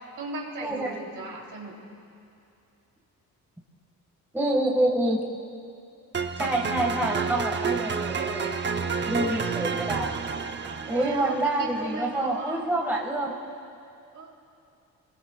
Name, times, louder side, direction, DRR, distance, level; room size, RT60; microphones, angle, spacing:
voice 1, 0.2-1.7 9.6-9.8 10.8-12.6 14.1-14.3, right 3 dB, 55° right, -2 dB, 3.4 m, -37 dB
voice 2, 4.3-5.3 6.4-8.5 9.1-10.1 10.9-13.3, right 1 dB, 5° right, -2 dB, 1.9 m, -27 dB
sound 1, 6.1-12.3, right 5 dB, 30° right, 0.8 m, -30 dB
24.5 x 20.5 x 2.4 m, 2.6 s
cardioid pair, 90°, 37 cm